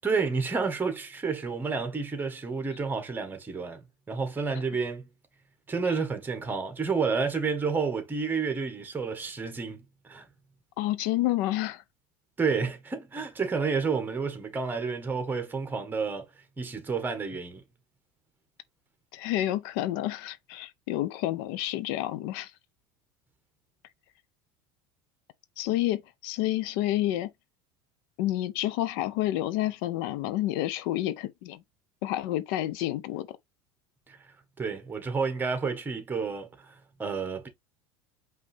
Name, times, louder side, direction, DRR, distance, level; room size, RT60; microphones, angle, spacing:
voice 1, 0.0-3.8 4.1-5.1 5.7-10.2 12.4-16.2 16.6-17.6 34.1-34.2 34.6-37.5, right 5 dB, 15° right, 1.3 m, -30 dB
voice 2, 10.8-11.8 19.1-22.5 25.6-27.3 28.2-31.6 32.0-33.4, left 14 dB, 70° left, 0.5 m, -29 dB
5.2 x 2.7 x 3.2 m
supercardioid pair, 130°, 12 cm